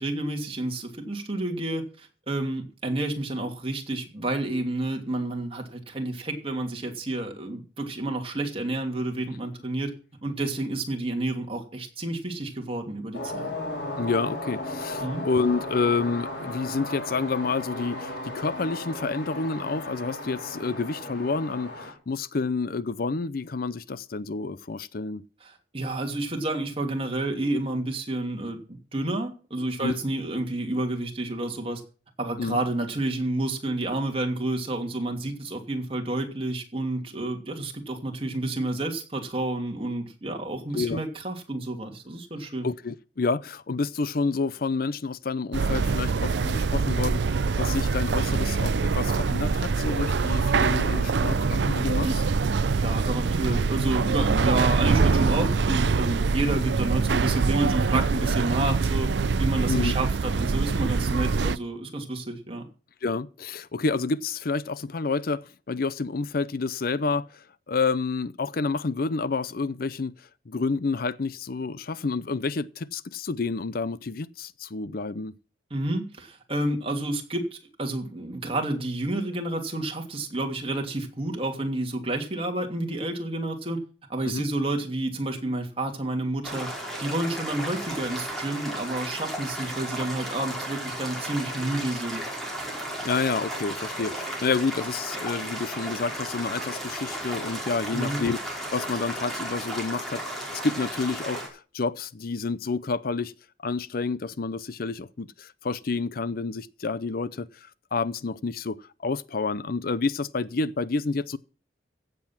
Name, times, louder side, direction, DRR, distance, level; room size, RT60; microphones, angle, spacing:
voice 1, 0.0-9.9 10.2-13.5 15.0-15.2 25.4-31.8 32.2-42.7 52.0-52.1 52.7-62.6 75.7-83.8 84.1-86.7 87.0-92.2 97.9-98.2, right 2 dB, 30° right, 2.8 m, -30 dB
sound 1, 13.1-21.9, left 1 dB, 70° left, 4.8 m, -35 dB
voice 2, 14.0-25.2 29.8-29.9 32.4-32.6 40.7-41.0 42.6-52.1 59.7-59.9 63.0-75.3 84.2-84.5 93.0-98.4 98.7-103.3 103.6-108.8 109.0-111.4, left 4 dB, 55° left, 0.6 m, -29 dB
sound 2, 45.5-61.6, right 4 dB, 75° right, 0.5 m, -24 dB
sound 3, 86.4-101.5, right 1 dB, ahead, 4.9 m, -34 dB
16.0 x 7.9 x 5.9 m
head